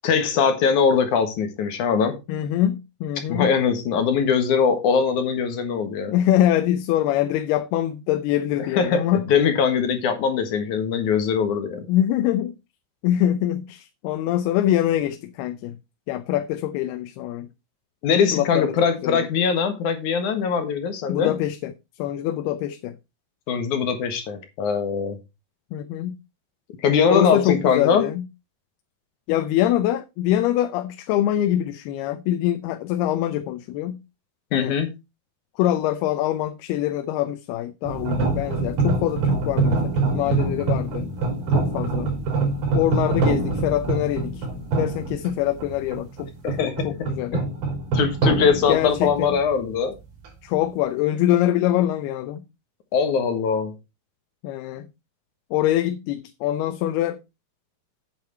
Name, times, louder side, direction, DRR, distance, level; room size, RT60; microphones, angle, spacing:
voice 1, 0.0-2.2 3.3-6.1 8.7-9.0 9.3-11.9 18.0-21.3 23.5-25.2 26.8-28.1 34.5-34.9 46.4-46.9 47.3-47.4 47.9-50.0 52.9-53.7, left 6 dB, 60° left, 2.6 m, -21 dB
voice 2, 2.3-3.6 6.1-9.3 11.9-12.6 13.0-15.8 16.1-17.5 18.3-18.8 19.0-19.2 21.1-21.7 22.0-23.0 25.7-26.2 27.1-28.3 29.3-34.0 34.5-34.8 35.6-41.1 41.5-42.1 42.7-44.5 44.8-46.3 46.6-47.4 48.7-49.4 50.4-52.4 54.4-54.9 55.5-57.2, left 12 dB, 85° left, 2.7 m, -24 dB
sound 1, 37.8-49.7, right 3 dB, 75° right, 5.3 m, -25 dB
9.2 x 8.1 x 4.5 m
omnidirectional pair, 4.5 m